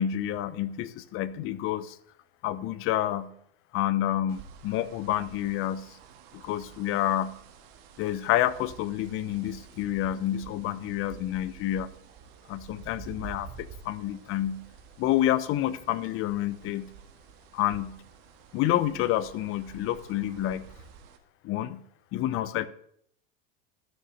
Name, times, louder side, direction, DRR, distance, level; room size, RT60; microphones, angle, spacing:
voice 1, 0.0-2.0 2.4-3.3 3.7-5.9 6.3-7.3 8.0-11.9 12.5-14.6 15.0-16.9 17.5-18.0 18.5-20.7 21.4-21.8 22.1-22.7, left 12 dB, 45° left, 16 dB, 0.9 m, -28 dB
sound 1, 4.3-21.2, right 7 dB, 60° right, 2.0 m, -50 dB
13.0 x 7.0 x 6.5 m, 0.68 s
supercardioid pair, 110°, 29 cm